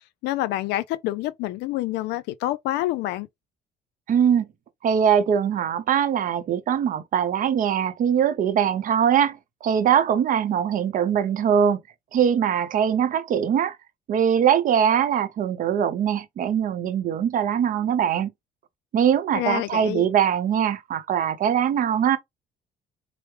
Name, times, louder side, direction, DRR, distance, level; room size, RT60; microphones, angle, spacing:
voice 1, 0.2-3.3 19.3-20.0, left 15 dB, 85° left, 0.5 m, -27 dB
voice 2, 4.1-4.5 4.8-11.8 12.1-13.8 14.1-18.3 18.9-22.2, right 8 dB, 55° right, 0.6 m, -22 dB
4.4 x 2.0 x 3.2 m
cardioid pair, 110°, 17 cm